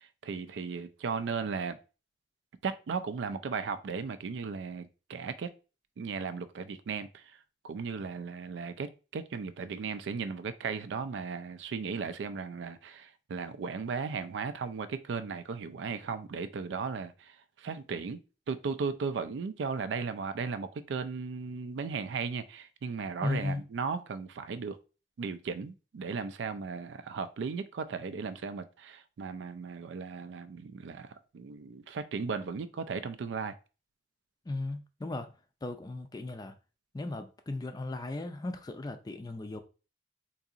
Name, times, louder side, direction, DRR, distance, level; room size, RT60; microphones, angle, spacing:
voice 1, 0.0-1.8 2.6-5.5 6.0-7.4 7.6-18.2 18.5-24.8 25.2-33.5, right 5 dB, 90° right, 0.4 m, -36 dB
voice 2, 23.2-23.6 34.5-35.3 35.6-36.6 36.9-39.6, left 2 dB, 20° left, 0.4 m, -36 dB
3.8 x 2.7 x 2.5 m
head